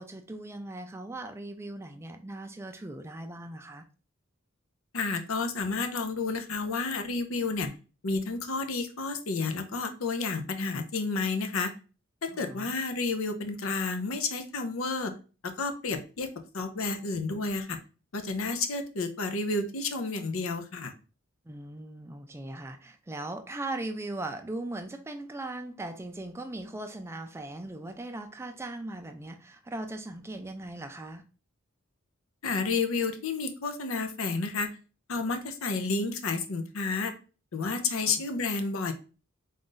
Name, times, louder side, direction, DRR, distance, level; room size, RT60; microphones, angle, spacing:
voice 1, 0.0-3.8 12.3-12.7 21.5-31.2 38.0-38.2, right 2 dB, 10° right, 0.3 m, -39 dB
voice 2, 4.9-7.7 8.0-11.7 12.2-15.1 15.4-16.3 16.5-17.8 18.1-20.9 32.4-34.7 35.1-37.1 37.5-38.9, left 4 dB, 75° left, 0.6 m, -31 dB
3.8 x 2.5 x 3.8 m
head